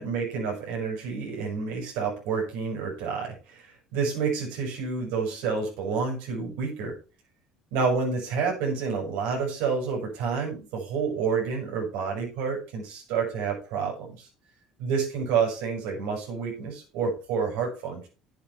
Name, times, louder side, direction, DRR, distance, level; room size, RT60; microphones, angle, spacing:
voice 1, 0.0-3.7 3.9-6.9 7.7-14.3 14.8-18.1, right 5 dB, 80° right, -1 dB, 6.8 m, -29 dB
10.0 x 9.6 x 4.4 m, 0.33 s
supercardioid pair, 85°, 3 cm